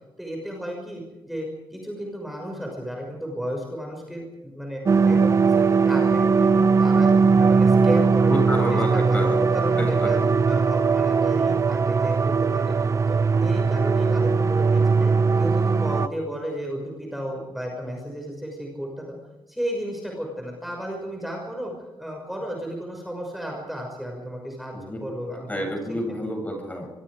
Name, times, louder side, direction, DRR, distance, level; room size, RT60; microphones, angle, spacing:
voice 1, 0.2-4.8 5.1-8.3 8.9-9.3 9.5-10.2 10.5-12.7 13.1-19.2 19.5-21.7 22.0-25.5 25.9-26.0, equal, ahead, 0 dB, 6.1 m, -33 dB
sound 1, 4.9-16.1, right 5 dB, 35° right, 0.7 m, -19 dB
voice 2, 8.3-9.5 9.8-10.6 24.7-25.2 25.5-26.9, equal, 20° left, 2 dB, 7.6 m, -30 dB
25.5 x 24.0 x 5.1 m, 1.1 s
wide cardioid pair, 125°, 9 cm